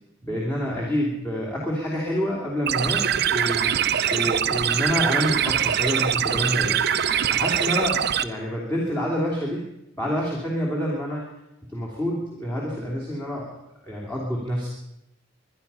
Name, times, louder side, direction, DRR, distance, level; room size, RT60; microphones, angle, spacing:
voice 1, 0.2-3.7 4.1-6.8 7.3-9.6 9.9-11.3 11.7-13.5 13.8-14.7, equal, 10° left, -4 dB, 2.8 m, -27 dB
sound 1, 2.7-8.2, right 9 dB, 55° right, 0.6 m, -23 dB
23.5 x 10.0 x 5.5 m, 0.85 s
head